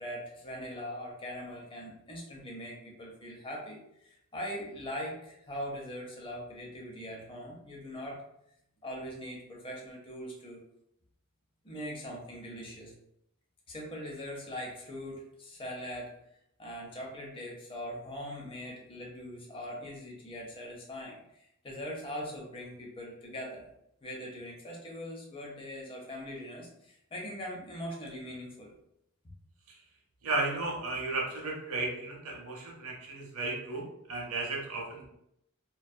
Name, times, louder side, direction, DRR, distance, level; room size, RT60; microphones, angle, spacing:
voice 1, 0.0-8.2 8.8-10.6 11.6-12.9 13.7-16.1 16.6-23.7 24.0-28.7, equal, 25° left, -2 dB, 0.6 m, -41 dB
voice 2, 30.2-35.1, right 3 dB, 75° right, 0 dB, 0.7 m, -34 dB
2.6 x 2.3 x 2.2 m, 0.76 s
head